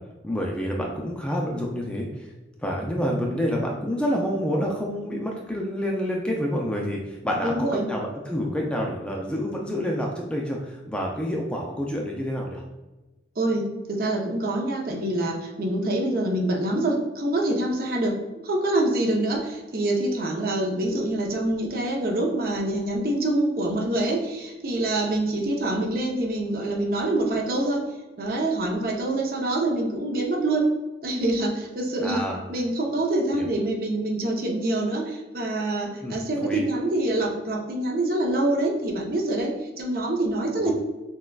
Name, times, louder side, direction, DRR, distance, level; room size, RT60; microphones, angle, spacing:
voice 1, 0.2-2.3 2.6-12.6 32.0-32.4 33.3-33.5 36.0-36.6 40.6-40.7, equal, 5° left, -1 dB, 0.3 m, -28 dB
voice 2, 7.4-7.9 13.4-27.9 28.2-30.7 31.0-32.2 32.5-40.7, right 1 dB, 50° right, 0 dB, 0.6 m, -25 dB
6.2 x 2.2 x 2.3 m, 1.1 s
head